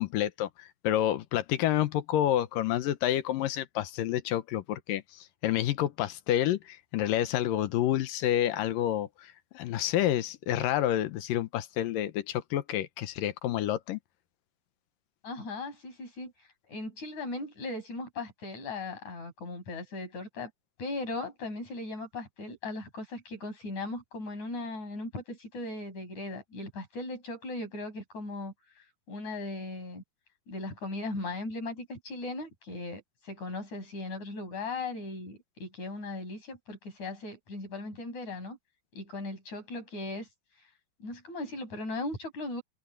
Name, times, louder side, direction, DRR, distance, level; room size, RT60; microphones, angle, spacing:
voice 1, 0.0-5.0 5.4-14.0, left 12 dB, 75° left, 2.6 m, -29 dB
voice 2, 15.2-20.5 20.8-30.0 30.5-38.6 38.9-40.3 41.0-42.6, left 2 dB, 50° left, 9.1 m, -38 dB
open air
omnidirectional pair, 4.2 m